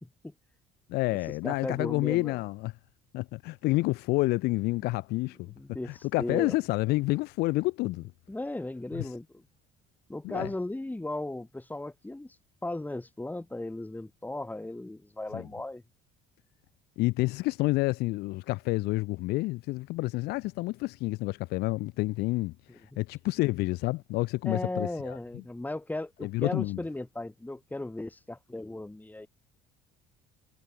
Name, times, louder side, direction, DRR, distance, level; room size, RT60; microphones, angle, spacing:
voice 1, 0.0-0.3 1.4-2.4 5.6-6.5 8.3-9.3 10.1-12.4 12.6-15.8 24.4-29.3, left 2 dB, 10° left, 2.7 m, -36 dB
voice 2, 0.9-2.7 3.1-5.5 5.8-8.1 8.9-9.1 10.2-10.5 15.3-15.5 17.0-25.4 26.2-26.8, left 21 dB, 75° left, 0.7 m, -29 dB
supercardioid pair, 75°, 17 cm